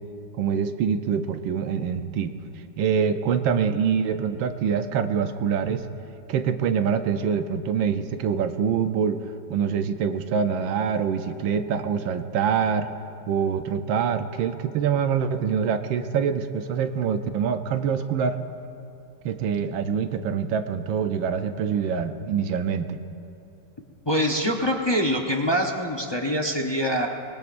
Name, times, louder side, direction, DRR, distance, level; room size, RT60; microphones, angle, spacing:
voice 1, 0.4-2.3 2.8-5.8 6.3-9.2 9.5-12.9 13.3-18.4 19.2-23.0, right 7 dB, 85° right, 8 dB, 1.5 m, -25 dB
voice 2, 24.1-27.1, equal, 30° left, 0 dB, 0.5 m, -24 dB
24.5 x 21.5 x 2.6 m, 2.7 s
omnidirectional pair, 2.0 m